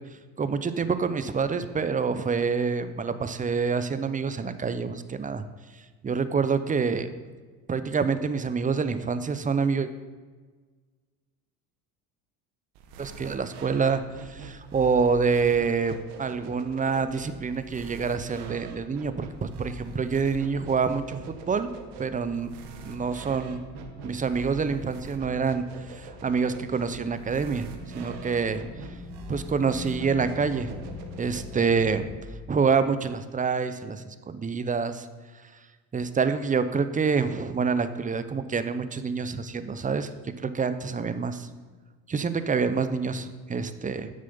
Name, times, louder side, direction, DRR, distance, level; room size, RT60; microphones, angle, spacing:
voice 1, 0.4-5.4 6.0-7.1 7.7-9.9 13.0-21.7 22.0-22.5 22.8-23.6 24.0-27.7 27.9-28.6 29.3-32.1 32.5-35.1 35.9-40.1 40.4-41.5 42.1-44.1, right 5 dB, 20° right, 11 dB, 0.7 m, -27 dB
sound 1, 12.7-31.9, right 4 dB, 65° right, 1.4 m, -44 dB
sound 2, 17.0-32.2, left 2 dB, ahead, 1.7 m, -45 dB
9.3 x 6.5 x 5.5 m, 1.4 s
hypercardioid pair, 70°, 44 cm